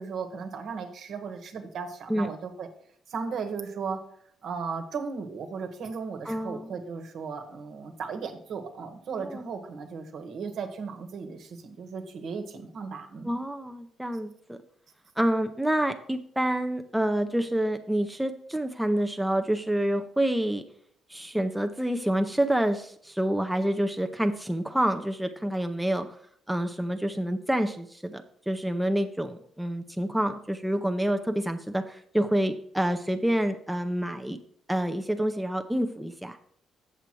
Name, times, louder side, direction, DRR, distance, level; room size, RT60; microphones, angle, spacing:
voice 1, 0.0-2.7 3.1-4.0 4.4-13.3, right 5 dB, 70° right, 6 dB, 1.3 m, -36 dB
voice 2, 6.3-6.7 9.2-9.5 13.2-14.6 15.2-20.6 21.1-26.2 26.5-34.4 34.7-36.4, right 1 dB, 5° right, 6 dB, 0.6 m, -28 dB
7.4 x 6.9 x 4.5 m, 0.65 s
cardioid pair, 90°, 0 cm